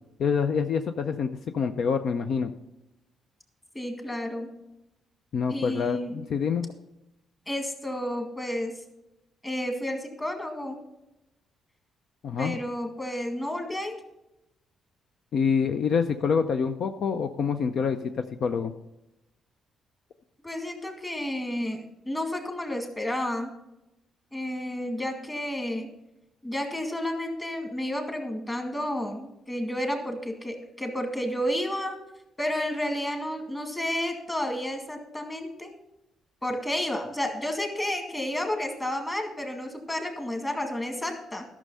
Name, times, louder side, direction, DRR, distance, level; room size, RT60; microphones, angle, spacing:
voice 1, 0.2-2.5 5.3-6.7 12.2-12.6 15.3-18.7, left 6 dB, 65° left, 7 dB, 0.6 m, -26 dB
voice 2, 3.7-4.7 5.5-6.3 7.5-8.8 9.4-10.8 12.4-14.0 20.4-23.6 24.3-25.9 26.4-32.0 32.4-35.7 36.4-41.5, left 1 dB, 15° left, 4 dB, 2.1 m, -31 dB
12.0 x 6.4 x 5.6 m, 0.91 s
cardioid pair, 90°, 0 cm